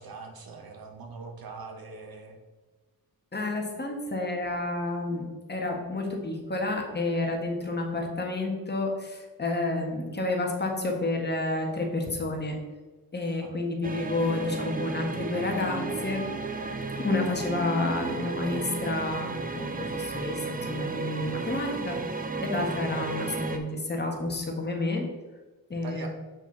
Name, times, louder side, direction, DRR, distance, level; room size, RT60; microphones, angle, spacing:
voice 1, 0.0-2.4 13.4-13.5 25.8-26.1, right 4 dB, 70° right, 3 dB, 1.4 m, -42 dB
voice 2, 3.3-12.6 13.1-16.3 17.0-22.0 22.4-25.1 25.7-26.1, left 2 dB, 30° left, 1 dB, 1.4 m, -30 dB
sound 1, 13.8-23.6, right 4 dB, 25° right, 0.6 m, -33 dB
7.2 x 6.1 x 4.0 m, 1.3 s
wide cardioid pair, 130°, 37 cm